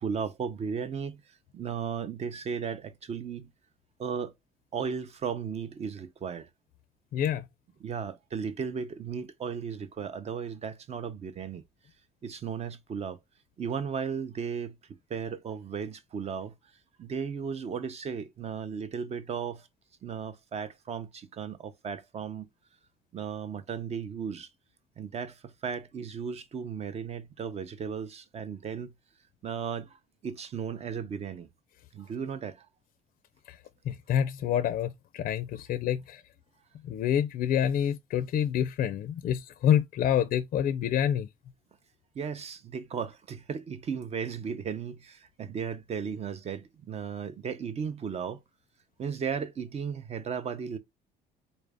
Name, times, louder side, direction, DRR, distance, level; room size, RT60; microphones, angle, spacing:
voice 1, 0.0-3.5 4.0-4.3 4.7-6.5 7.8-11.6 12.2-13.2 13.6-14.8 15.1-16.5 17.0-19.7 20.0-22.5 23.1-24.5 25.0-28.9 29.4-31.5 31.9-32.7 42.1-48.4 49.0-50.8, right 6 dB, 40° right, 0.6 m, -35 dB
voice 2, 7.1-7.4 33.5-33.6 33.9-36.2 36.9-41.3, left 9 dB, 55° left, 0.4 m, -27 dB
4.0 x 2.5 x 3.4 m
cardioid pair, 110°, 17 cm